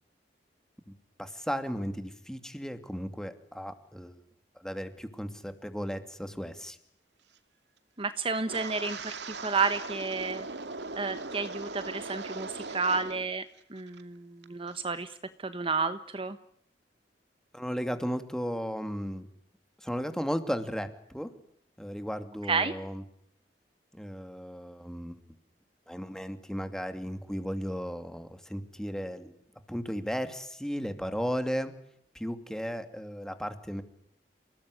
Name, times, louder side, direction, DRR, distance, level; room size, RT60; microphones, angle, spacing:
voice 1, 1.2-4.2 4.6-6.8 17.5-19.3 19.8-21.3 21.8-23.0 23.9-25.2 25.9-29.3 29.7-31.7 32.1-33.8, equal, 5° left, 9 dB, 2.6 m, -35 dB
voice 2, 8.0-10.5 11.0-16.4 22.4-22.7, right 4 dB, 30° right, 11 dB, 1.2 m, -31 dB
Wind, 8.4-13.3 13.6-14.0 14.4-14.7, right 3 dB, 80° right, 2.4 m, -39 dB
29.0 x 18.5 x 9.9 m, 0.70 s
head